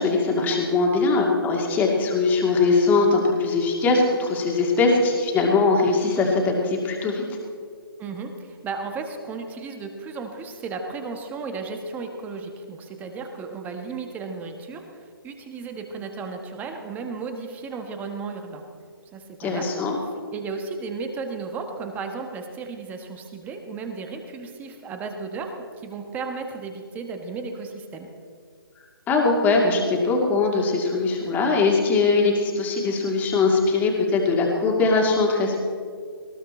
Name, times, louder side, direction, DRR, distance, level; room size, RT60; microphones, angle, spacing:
voice 1, 0.0-7.2 19.4-20.0 29.1-35.6, left 3 dB, 15° left, 0 dB, 2.3 m, -21 dB
voice 2, 8.0-18.6 19.1-19.7 20.3-28.1, right 4 dB, 15° right, 5 dB, 1.3 m, -34 dB
19.5 x 17.0 x 4.4 m, 2.1 s
figure-of-eight pair, 145°, 13 cm